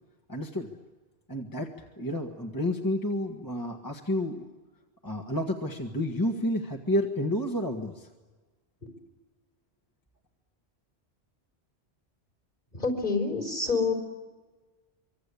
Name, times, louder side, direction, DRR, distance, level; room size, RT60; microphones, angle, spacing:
voice 1, 0.3-0.7 1.3-4.5 5.0-8.1, left 1 dB, 20° left, 1 dB, 1.8 m, -30 dB
voice 2, 12.7-13.9, left 4 dB, 50° left, 2 dB, 5.4 m, -27 dB
25.5 x 25.5 x 8.5 m, 1.3 s
omnidirectional pair, 1.1 m